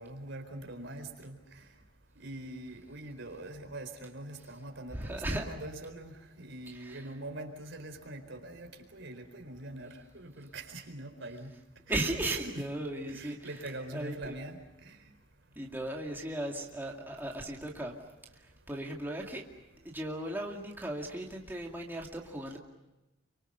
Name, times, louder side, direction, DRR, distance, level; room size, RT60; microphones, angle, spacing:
voice 1, 0.0-1.6 2.2-11.5 11.9-12.4 13.1-15.0, right 1 dB, 65° right, 5 dB, 4.3 m, -44 dB
voice 2, 4.9-5.4 6.7-7.0 11.9-13.5 13.9-14.4 15.5-18.0 18.3-19.4 19.8-22.6, right 1 dB, 10° right, -1 dB, 2.4 m, -36 dB
29.0 x 25.0 x 6.8 m, 1.0 s
head